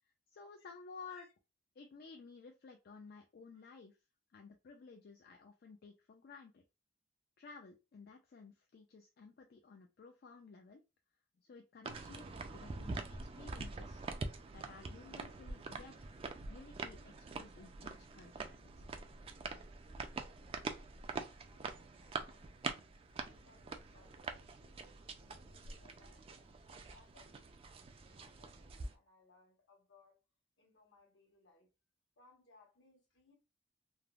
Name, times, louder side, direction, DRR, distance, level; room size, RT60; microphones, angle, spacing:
voice 1, 0.0-1.3 1.8-4.0 4.3-6.6 7.4-10.8 11.4-12.3 12.5-14.0 14.5-15.9 16.5-18.9, left 4 dB, 55° left, 0.4 m, -55 dB
sound 1, 11.8-28.9, right 3 dB, 30° right, 0.3 m, -45 dB
voice 2, 19.9-22.9 23.3-30.2 30.6-31.7 32.2-33.3, left 3 dB, 75° left, 1.1 m, -67 dB
3.3 x 2.0 x 2.3 m
head